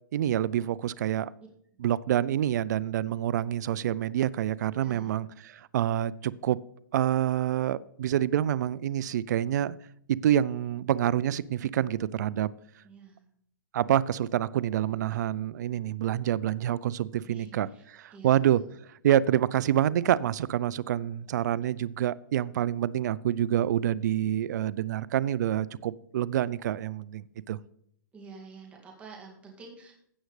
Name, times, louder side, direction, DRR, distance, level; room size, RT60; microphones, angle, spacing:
voice 1, 0.1-1.3 1.8-6.6 6.9-9.8 10.1-12.5 13.7-18.6 19.0-27.6, right 11 dB, 60° right, 20 dB, 0.4 m, -27 dB
voice 2, 4.7-5.1 12.8-13.2 17.2-17.8 18.1-18.3 28.1-29.9, right 4 dB, 10° right, -1 dB, 2.1 m, -48 dB
16.0 x 6.4 x 3.2 m, 0.70 s
hypercardioid pair, 150°, 10 cm